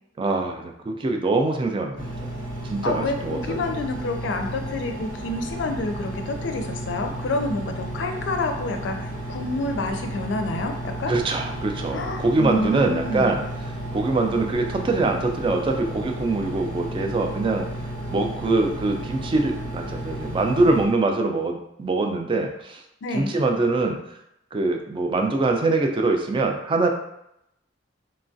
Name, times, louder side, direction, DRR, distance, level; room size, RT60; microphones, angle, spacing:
voice 1, 0.2-2.3 2.7-3.7 11.1-13.4 13.9-17.7 18.1-22.8 23.1-24.0 24.5-26.9, right 3 dB, 25° right, 3 dB, 0.3 m, -23 dB
Engine, 2.0-20.8, right 1 dB, 90° right, 0.9 m, -33 dB
voice 2, 2.8-11.1 11.9-13.3 23.0-23.3, left 2 dB, 75° left, 5 dB, 0.4 m, -28 dB
3.0 x 2.3 x 2.5 m, 0.80 s
head